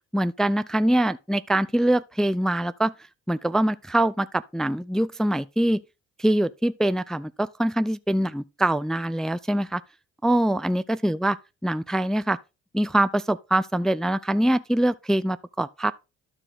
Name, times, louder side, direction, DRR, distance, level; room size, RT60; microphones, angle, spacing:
voice 1, 0.1-2.9 3.3-5.8 6.2-9.8 10.2-11.4 11.6-12.4 12.7-15.9, right 1 dB, ahead, 0.3 m, -24 dB
12.5 x 4.5 x 3.6 m
cardioid pair, 90°, 30 cm